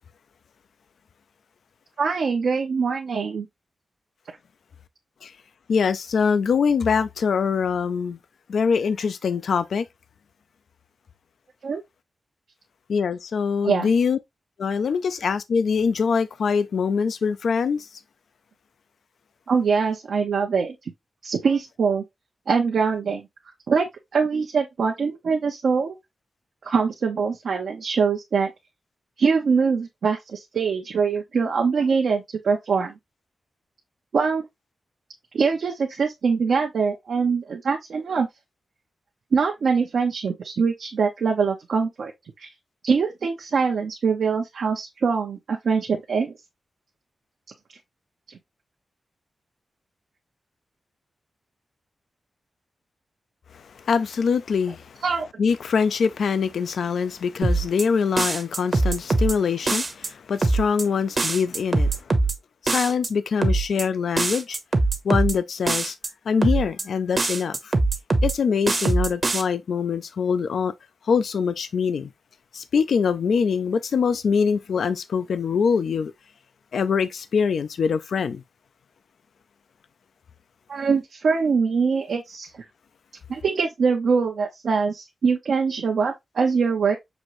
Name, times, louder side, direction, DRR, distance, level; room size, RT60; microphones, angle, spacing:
voice 1, 2.0-3.5 11.6-11.8 13.6-13.9 19.5-20.7 21.2-22.0 22.5-23.3 23.7-23.8 24.1-26.0 26.6-28.5 29.2-32.9 34.1-34.4 35.3-38.3 39.3-42.1 42.4-42.5 42.8-46.3 55.0-55.3 80.7-82.5 83.3-87.0, right 5 dB, 75° right, 0.8 m, -23 dB
voice 2, 5.7-8.2 8.5-9.8 12.9-14.2 14.6-17.9 53.9-54.8 55.4-61.9 62.6-64.6 65.0-66.0 66.3-67.6 68.2-70.7 71.1-72.1 72.5-76.1 76.7-78.4, left 6 dB, 80° left, 0.3 m, -23 dB
sound 1, 57.4-57.8 58.2-59.3 59.7-60.1 60.4-60.8 61.2-62.3 62.7-63.1 63.4-63.8 64.2-65.3 65.7-66.1 66.4-66.8 67.2-68.3 68.7-69.4, right 3 dB, 40° right, 0.9 m, -22 dB
6.1 x 2.6 x 3.0 m
cardioid pair, 85°, 0 cm